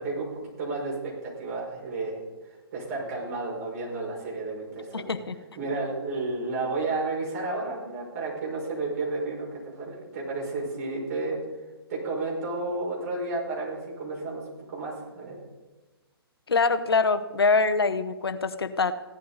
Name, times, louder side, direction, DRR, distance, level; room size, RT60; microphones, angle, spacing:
voice 1, 0.0-5.1 5.6-11.4 11.9-15.4, right 3 dB, 40° right, -3 dB, 5.6 m, -32 dB
voice 2, 4.9-5.4 16.5-18.9, left 4 dB, 70° left, 10 dB, 0.9 m, -24 dB
16.0 x 11.5 x 4.1 m, 1.2 s
figure-of-eight pair, 130°, 13 cm